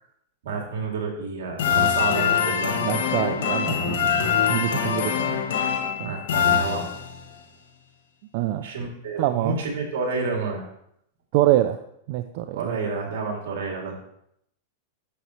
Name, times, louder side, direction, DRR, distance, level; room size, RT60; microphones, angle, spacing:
voice 1, 0.4-2.7 6.0-6.9 8.6-10.6 12.5-14.0, right 4 dB, 75° right, 0 dB, 2.8 m, -29 dB
sound 1, 1.6-7.3, left 8 dB, 80° left, 1.2 m, -24 dB
voice 2, 2.8-5.4 6.0-6.2 8.3-8.7 9.2-9.6 11.3-11.8 12.1-12.8, right 14 dB, 50° right, 8 dB, 0.4 m, -25 dB
9.9 x 6.9 x 3.2 m, 0.74 s
supercardioid pair, 155°, 0 cm